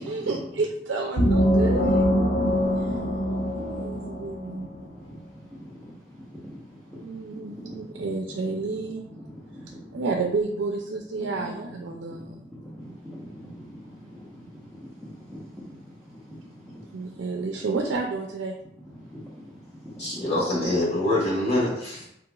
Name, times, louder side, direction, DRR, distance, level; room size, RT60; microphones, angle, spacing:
voice 1, 0.0-2.0 2.8-2.9 3.6-4.7 7.0-9.0 9.9-12.5 16.9-18.5, right 3 dB, 80° right, 1 dB, 0.4 m, -30 dB
sound 1, 1.2-4.7, equal, 80° left, 0.8 m, -23 dB
voice 2, 2.9-3.7 4.0-5.9 6.3-8.1 8.9-10.0 11.4-11.8 12.1-15.4 15.7-17.4 18.9-20.3 21.4-21.6, equal, ahead, -9 dB, 0.6 m, -44 dB
voice 3, 20.0-22.0, left 1 dB, 35° left, -7 dB, 1.5 m, -25 dB
3.8 x 2.9 x 2.3 m, 0.78 s
head